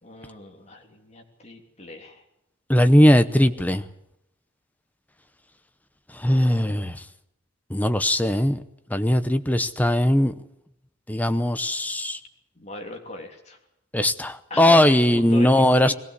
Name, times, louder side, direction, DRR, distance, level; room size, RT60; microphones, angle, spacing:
voice 1, 0.0-2.2 12.5-13.6 14.5-15.9, left 1 dB, 30° left, 2 dB, 3.3 m, -39 dB
voice 2, 2.7-3.8 6.2-7.0 7.7-8.6 8.9-10.3 11.1-12.2 13.9-15.9, left 1 dB, 10° left, 10 dB, 0.8 m, -19 dB
21.5 x 16.5 x 8.2 m, 0.82 s
head